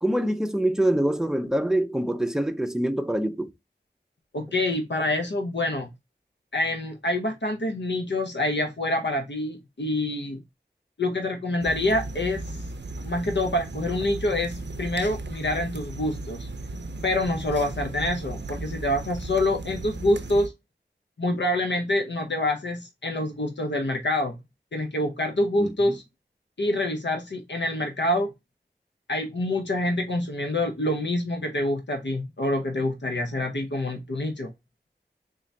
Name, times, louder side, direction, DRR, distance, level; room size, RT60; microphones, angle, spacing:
voice 1, 0.0-3.5 25.6-26.0, right 1 dB, 5° right, 0.5 m, -25 dB
voice 2, 4.3-5.9 6.5-10.4 11.0-12.4 13.0-16.5 17.0-20.5 21.2-24.4 24.7-26.0 26.6-28.3 29.1-34.5, left 1 dB, 85° left, 0.7 m, -26 dB
sound 1, 11.6-20.5, right 2 dB, 80° right, 0.5 m, -36 dB
3.6 x 3.2 x 2.6 m
wide cardioid pair, 45°, 18 cm